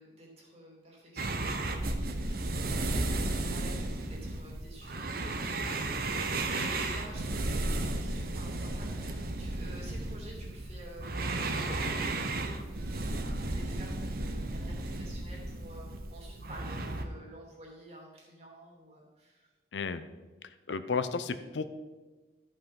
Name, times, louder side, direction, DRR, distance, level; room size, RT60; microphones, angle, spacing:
voice 1, 0.0-5.8 6.4-19.5, right 1 dB, 35° right, -2 dB, 2.8 m, -51 dB
sound 1, 1.2-17.0, right 2 dB, 50° right, 0.9 m, -34 dB
voice 2, 19.7-20.0 20.7-21.6, left 4 dB, 75° left, 11 dB, 0.6 m, -33 dB
13.0 x 5.5 x 5.8 m, 1.2 s
head